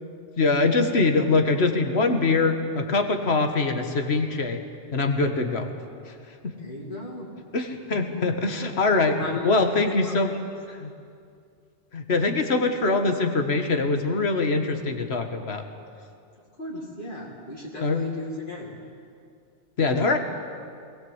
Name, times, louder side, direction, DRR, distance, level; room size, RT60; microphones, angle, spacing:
voice 1, 0.4-4.6 4.9-5.7 6.0-6.2 6.4-6.6 7.5-9.2 9.4-10.3 10.7-10.9 11.9-15.6 17.8-18.1 19.8-20.2, left 3 dB, 65° left, 6 dB, 1.8 m, -23 dB
voice 2, 6.6-7.3 7.9-8.3 9.0-10.1 16.6-18.7, left 2 dB, 45° left, -5 dB, 2.7 m, -35 dB
20.5 x 18.0 x 8.1 m, 2.3 s
omnidirectional pair, 1.2 m